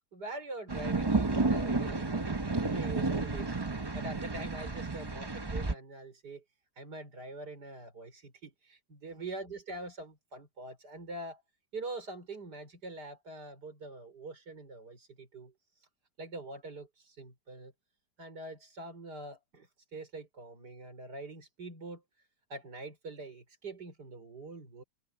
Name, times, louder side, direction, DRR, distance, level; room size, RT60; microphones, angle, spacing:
voice 1, 0.1-6.4 6.8-11.4 11.7-15.9 16.2-17.7 18.2-24.8, right 2 dB, 80° right, 5.5 m, -44 dB
sound 1, 0.7-5.7, right 3 dB, 20° right, 0.8 m, -31 dB
omnidirectional pair, 1.7 m